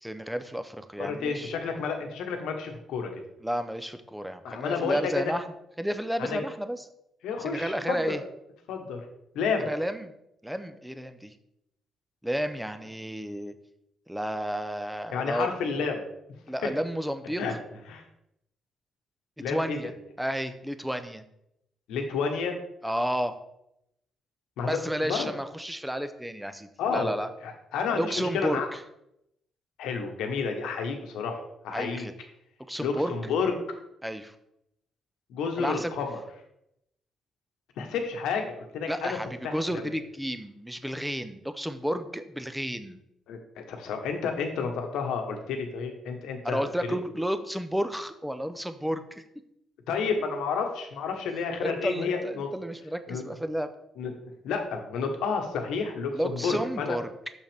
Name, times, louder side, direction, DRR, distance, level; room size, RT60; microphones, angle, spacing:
voice 1, 0.0-1.5 3.4-5.4 5.8-6.8 7.4-8.2 9.6-10.1 10.4-11.3 12.2-13.5 14.1-15.5 16.5-17.4 19.4-19.9 20.2-21.2 22.8-23.3 24.6-27.3 27.9-28.8 31.7-32.1 32.7-33.2 34.0-34.3 35.6-35.9 38.9-43.0 46.4-49.2 51.6-53.7 56.1-57.1, equal, 5° right, 10 dB, 0.6 m, -31 dB
voice 2, 1.0-3.1 4.4-5.3 6.2-6.4 7.2-8.2 8.7-9.0 9.3-9.7 15.1-16.0 17.4-17.5 17.9-18.0 19.4-19.8 21.9-22.6 24.6-25.3 26.8-27.1 27.4-28.7 29.8-32.1 32.8-33.5 35.3-36.2 37.8-39.2 39.4-39.6 43.3-43.4 43.7-47.0 49.9-52.5 53.1-53.2 54.0-54.1 54.4-57.0, left 5 dB, 85° left, 4 dB, 1.1 m, -30 dB
6.5 x 6.1 x 3.4 m, 0.81 s
cardioid pair, 90°, 0 cm